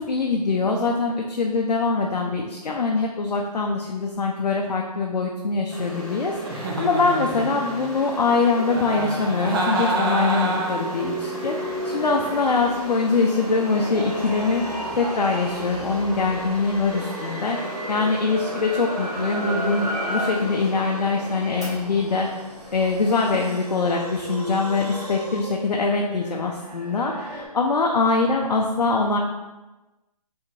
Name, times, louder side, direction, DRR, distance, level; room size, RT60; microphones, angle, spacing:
voice 1, 0.0-14.6 14.9-22.3 22.7-29.2, left 4 dB, 80° left, 1 dB, 0.5 m, -23 dB
sound 1, 5.7-24.2, right 1 dB, ahead, 1.1 m, -36 dB
Giggle, 6.4-7.9 8.7-11.0, right 1 dB, 35° right, 0.6 m, -27 dB
sound 2, 10.9-27.5, right 1 dB, 80° right, 0.8 m, -34 dB
3.6 x 3.4 x 2.7 m, 1.1 s
figure-of-eight pair, 145°, 20 cm